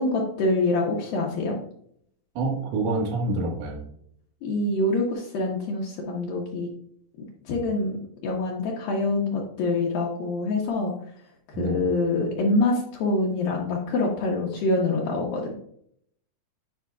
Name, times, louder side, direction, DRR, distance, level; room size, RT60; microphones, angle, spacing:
voice 1, 0.0-1.6 4.4-6.7 7.5-8.0 8.2-10.9 11.6-15.5, left 2 dB, 70° left, -3 dB, 2.5 m, -25 dB
voice 2, 2.4-3.8 11.5-11.8, right 2 dB, 60° right, 0 dB, 2.5 m, -27 dB
9.7 x 5.6 x 2.3 m, 0.69 s
omnidirectional pair, 4.7 m